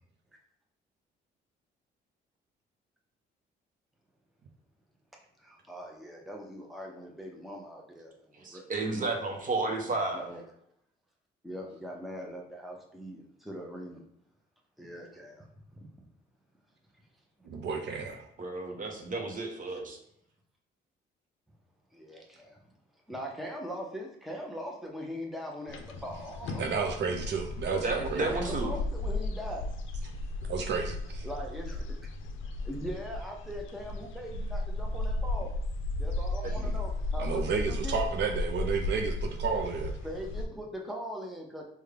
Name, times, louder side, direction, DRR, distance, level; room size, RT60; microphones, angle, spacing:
voice 1, 5.4-8.6 8.9-9.1 9.9-10.4 11.4-14.0 14.8-15.4 15.7-15.9 21.9-22.6 23.1-27.0 28.2-29.7 31.2-31.8 32.6-35.5 36.0-38.0 40.0-41.6, equal, ahead, -1 dB, 0.7 m, -41 dB
voice 2, 8.3-10.3 18.4-20.0 27.7-28.7 36.4-36.7, right 3 dB, 40° right, 2 dB, 0.8 m, -32 dB
voice 3, 17.4-18.2 26.6-28.3 30.5-31.3 37.2-39.9, right 5 dB, 60° right, 3 dB, 0.5 m, -32 dB
sound 1, 25.7-40.4, left 2 dB, 75° left, 0.5 m, -35 dB
3.5 x 2.3 x 3.3 m, 0.73 s
cardioid pair, 90°, 20 cm